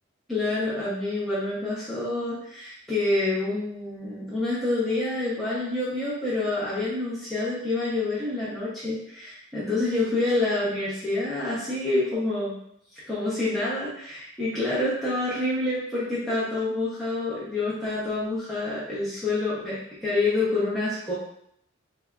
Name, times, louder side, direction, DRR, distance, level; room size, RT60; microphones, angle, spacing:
voice 1, 0.3-12.5 13.1-21.1, left 2 dB, ahead, -11 dB, 0.7 m, -27 dB
3.5 x 3.3 x 2.4 m, 0.72 s
head